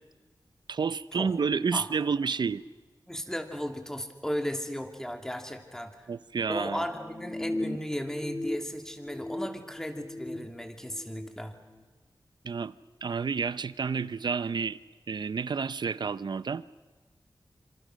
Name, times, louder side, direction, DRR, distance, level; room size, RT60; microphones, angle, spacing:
voice 1, 0.7-2.6 6.1-6.8 12.4-12.7 13.0-14.8 15.1-16.6, right 5 dB, 70° right, 0.7 m, -30 dB
voice 2, 3.1-6.1 6.5-11.5, equal, 5° left, 2.7 m, -35 dB
sound 1, 6.8-8.6 8.9-10.5 10.9-11.3, left 1 dB, 25° left, 2.0 m, -37 dB
27.0 x 26.5 x 6.5 m
wide cardioid pair, 90°, 8 cm